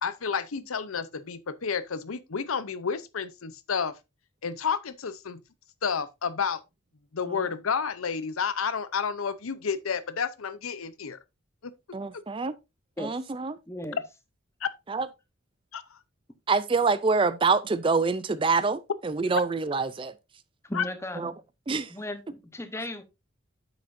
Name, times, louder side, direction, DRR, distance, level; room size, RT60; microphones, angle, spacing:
voice 1, 0.0-4.0 4.4-5.4 5.8-6.6 7.1-11.2 11.6-11.7 12.1-12.2 14.0-14.1 14.6-14.7 15.7-16.0 19.3-19.4 20.7-20.8, left 6 dB, 85° left, 0.7 m, -30 dB
voice 2, 11.9-12.6 13.0-13.6 14.9-15.1 16.5-20.1 21.2-21.3 21.7-21.9, right 4 dB, 25° right, 0.4 m, -26 dB
voice 3, 13.7-14.0 20.6-21.3 21.9-23.0, left 1 dB, 15° left, 1.0 m, -36 dB
9.0 x 7.6 x 2.6 m
head